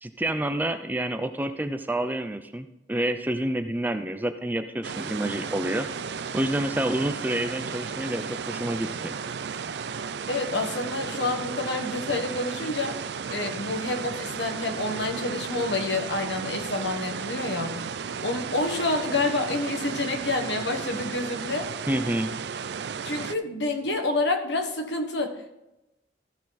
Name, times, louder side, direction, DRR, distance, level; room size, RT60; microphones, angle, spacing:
voice 1, 0.0-5.9 6.3-9.2 21.9-22.3, right 1 dB, 10° right, 8 dB, 0.4 m, -28 dB
sound 1, 4.8-23.3, right 6 dB, 65° right, 0.4 m, -34 dB
voice 2, 10.3-13.0 13.3-17.8 18.2-21.7 23.0-25.5, left 2 dB, 70° left, 4 dB, 1.5 m, -28 dB
14.5 x 6.4 x 4.1 m, 0.91 s
head